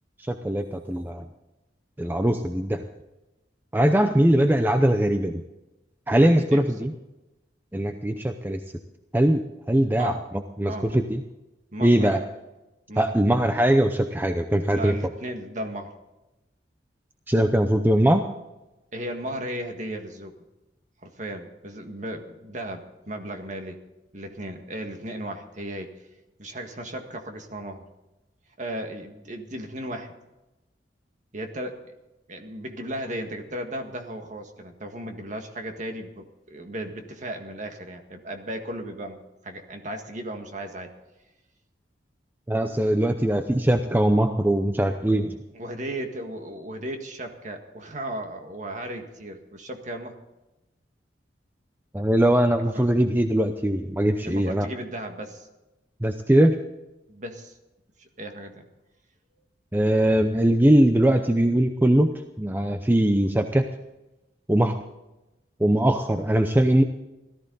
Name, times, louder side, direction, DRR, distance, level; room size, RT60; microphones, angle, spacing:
voice 1, 0.3-1.2 2.0-2.8 3.7-5.4 6.1-6.9 7.7-8.6 9.1-10.2 10.6-11.2 11.8-12.2 13.0-14.9 17.3-18.2 42.5-45.4 51.9-54.7 56.0-56.6 59.7-62.1 62.4-63.7 64.5-64.8 65.6-66.8, right 1 dB, 10° right, 7 dB, 0.6 m, -21 dB
voice 2, 6.2-6.9 10.0-10.2 10.6-11.0 11.7-12.2 12.9-13.1 14.7-15.9 18.9-20.4 21.0-23.8 24.1-25.9 26.4-27.8 28.6-30.1 31.3-31.8 32.3-39.2 39.4-40.9 45.5-50.2 52.7-52.9 54.2-55.5 57.1-57.6 58.0-58.7, right 1 dB, 40° right, 5 dB, 1.8 m, -35 dB
17.5 x 13.5 x 4.0 m, 1.0 s
head